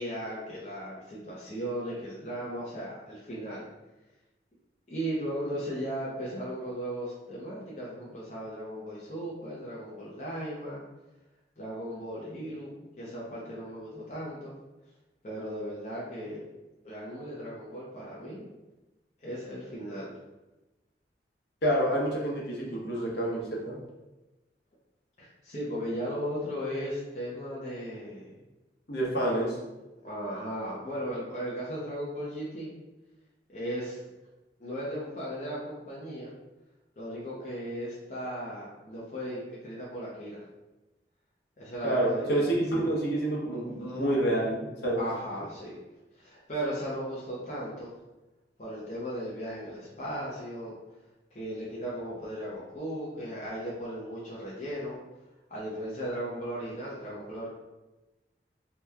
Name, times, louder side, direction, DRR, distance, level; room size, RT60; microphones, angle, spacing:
voice 1, 0.0-3.7 4.9-10.8 11.6-14.5 15.2-16.4 16.8-18.4 19.2-20.2 25.2-28.4 30.0-32.7 33.5-34.0 34.6-36.3 37.0-40.4 41.6-42.6 45.0-45.8 46.2-47.9 48.6-50.7 51.3-55.0 55.5-57.5, equal, 40° left, -6 dB, 0.6 m, -36 dB
voice 2, 21.6-23.8 28.9-29.6 41.8-45.0, right 1 dB, 70° left, -4 dB, 0.9 m, -28 dB
2.8 x 2.2 x 3.4 m, 1.1 s
head